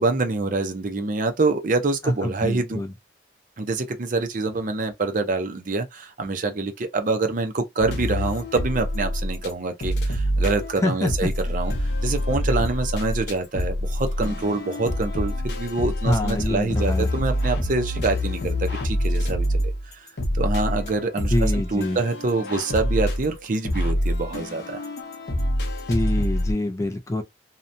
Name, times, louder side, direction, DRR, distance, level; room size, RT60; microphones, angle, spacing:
voice 1, 0.0-2.8 3.6-11.7 12.0-19.5 19.9-20.1 20.3-24.8, right 3 dB, 50° right, 0.5 m, -26 dB
voice 2, 2.0-2.9 10.8-11.3 16.1-17.1 21.3-22.0 25.9-27.2, left 1 dB, 15° left, 0.3 m, -25 dB
sound 1, 7.8-9.5 9.8-26.5, equal, 65° left, 0.7 m, -26 dB
2.8 x 2.1 x 2.5 m
head